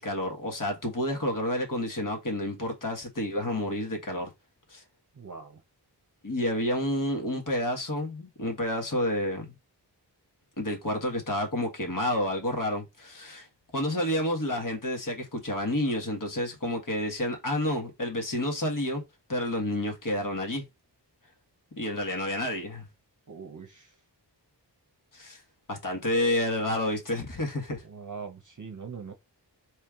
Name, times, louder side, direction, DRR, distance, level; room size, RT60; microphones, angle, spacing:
voice 1, 0.0-4.3 4.7-4.8 6.2-9.5 10.6-13.5 13.7-19.0 19.3-20.6 21.8-22.9 25.1-25.4 25.7-27.8, left 1 dB, 50° left, 1.5 m, -29 dB
voice 2, 5.2-5.6 23.3-23.9 27.8-29.1, right 5 dB, 45° right, 0.8 m, -42 dB
4.5 x 3.2 x 3.6 m
wide cardioid pair, 55°, 42 cm